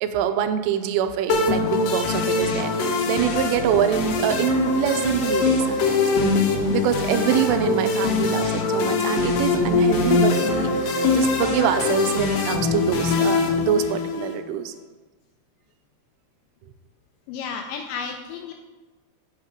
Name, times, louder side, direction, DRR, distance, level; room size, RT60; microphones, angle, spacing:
voice 1, 0.0-6.3 6.7-14.7, right 9 dB, 85° right, 9 dB, 3.0 m, -25 dB
sound 1, 1.3-14.3, left 3 dB, 70° left, 2.7 m, -22 dB
voice 2, 17.3-18.5, left 6 dB, 85° left, 4 dB, 2.6 m, -32 dB
8.3 x 7.4 x 5.0 m, 1.3 s
omnidirectional pair, 5.7 m